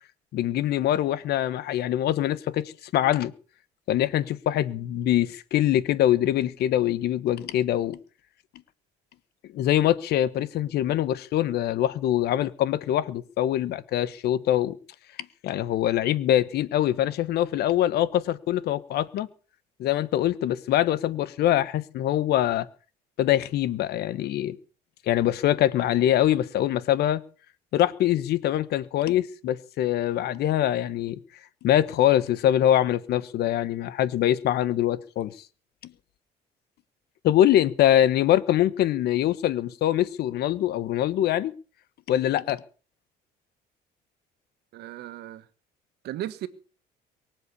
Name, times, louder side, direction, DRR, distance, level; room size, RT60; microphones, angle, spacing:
voice 1, 0.3-3.3 3.9-8.0 9.5-14.7 15.4-19.3 19.8-22.7 23.2-24.6 25.1-27.2 27.7-31.2 31.6-35.3 37.2-41.5 42.1-42.6, left 12 dB, 70° left, 1.3 m, -23 dB
voice 2, 44.7-45.4 46.0-46.5, right 13 dB, 80° right, 1.7 m, -35 dB
23.5 x 7.9 x 7.0 m
cardioid pair, 110°, 17 cm